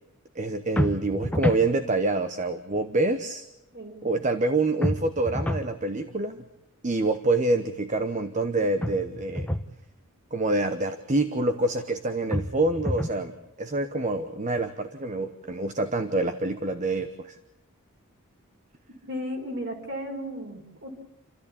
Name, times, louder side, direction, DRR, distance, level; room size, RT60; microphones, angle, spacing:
voice 1, 0.3-3.4 4.0-6.4 6.8-9.5 10.3-13.3 13.6-17.4, right 2 dB, 35° right, 9 dB, 1.0 m, -26 dB
sound 1, 0.8-1.7 4.8-5.7 8.8-9.7 12.3-13.2, equal, 5° left, 0.9 m, -28 dB
voice 2, 3.7-4.1 19.1-20.9, equal, 50° right, 2 dB, 4.9 m, -35 dB
29.0 x 13.5 x 8.6 m, 0.88 s
head